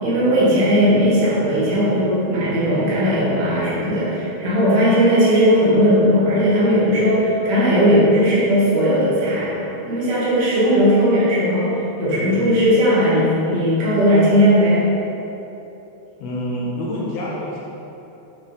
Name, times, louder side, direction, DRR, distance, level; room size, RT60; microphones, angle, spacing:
voice 1, 0.0-9.5 9.9-11.7 12.0-14.9, equal, 85° right, -9 dB, 3.7 m, -17 dB
voice 2, 16.2-17.6, equal, 80° left, -5 dB, 2.6 m, -27 dB
9.0 x 3.5 x 3.9 m, 3.0 s
omnidirectional pair, 4.6 m